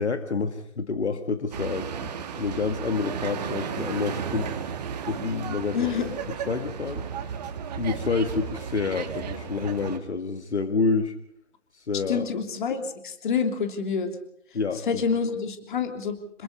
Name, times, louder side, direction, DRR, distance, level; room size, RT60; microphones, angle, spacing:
voice 1, 0.0-2.1 2.4-4.5 5.1-5.8 6.5-7.1 7.8-11.1 11.7-12.3 14.5-15.0, left 4 dB, 60° left, 8 dB, 2.0 m, -28 dB
sound 1, 1.5-10.0, right 7 dB, 35° right, 2.0 m, -34 dB
voice 2, 5.7-6.1 12.1-14.1 14.9-16.4, left 6 dB, 40° left, 6 dB, 3.1 m, -27 dB
27.5 x 21.0 x 5.5 m, 0.68 s
figure-of-eight pair, 145°, 37 cm